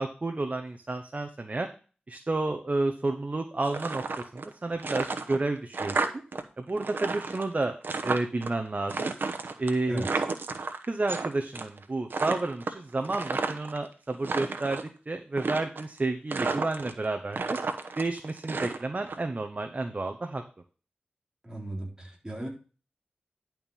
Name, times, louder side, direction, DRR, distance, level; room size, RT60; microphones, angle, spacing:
voice 1, 0.0-1.7 2.1-4.0 4.3-6.0 6.6-7.7 8.0-9.1 9.6-10.0 10.9-14.8 15.1-17.6 18.0-20.4, right 2 dB, 45° right, 5 dB, 1.0 m, -30 dB
sound 1, 3.6-4.5 4.8-6.4 6.7-8.5 8.9-11.3 11.5-11.8 12.1-13.8 14.1-14.9 15.4-16.0 16.3-17.0 17.3-19.2, right 4 dB, 85° right, 1.0 m, -32 dB
voice 2, 9.9-10.2 21.4-22.5, right 1 dB, 20° right, -2 dB, 4.0 m, -37 dB
11.0 x 4.6 x 5.4 m, 0.36 s
wide cardioid pair, 65°, 3 cm